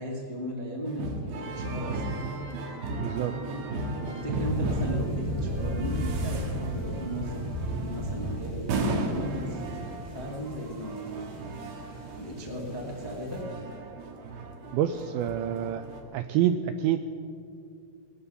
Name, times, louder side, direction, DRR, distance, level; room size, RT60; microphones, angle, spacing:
voice 1, 0.0-2.2 3.9-8.7 9.1-9.6 10.1-13.4, equal, 30° left, -2 dB, 0.4 m, -36 dB
sound 1, 0.9-16.0, right 2 dB, 70° right, 3.2 m, -35 dB
voice 2, 3.0-3.4 14.7-15.8 16.1-17.0, right 10 dB, 85° right, 9 dB, 2.2 m, -27 dB
sound 2, 4.3-13.4, equal, 20° right, 3.4 m, -35 dB
19.5 x 11.0 x 6.9 m, 2.5 s
omnidirectional pair, 4.8 m